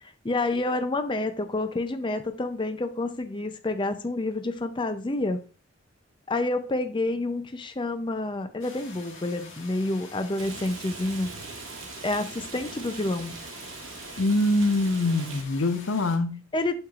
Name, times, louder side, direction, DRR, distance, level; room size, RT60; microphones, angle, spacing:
voice 1, 0.0-5.4 6.3-11.3 12.0-13.3 16.5-16.7, left 2 dB, 25° left, 0.5 m, -28 dB
sound 1, 8.6-16.2, left 3 dB, 65° left, 1.8 m, -46 dB
Rain, 10.4-15.4, right 4 dB, 75° right, 1.3 m, -41 dB
voice 2, 14.2-16.4, left 2 dB, 90° left, 0.8 m, -24 dB
8.6 x 6.5 x 2.4 m
head